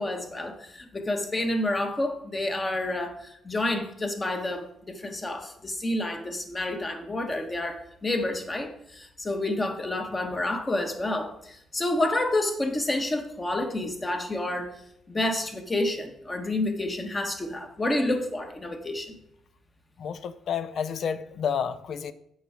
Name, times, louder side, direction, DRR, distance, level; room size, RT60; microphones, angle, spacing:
voice 1, 0.0-14.7 15.1-19.2, left 1 dB, 25° left, 1.3 m, -29 dB
voice 2, 20.0-22.1, left 7 dB, 65° left, 0.5 m, -30 dB
7.8 x 5.5 x 5.0 m
cardioid pair, 90°, 0 cm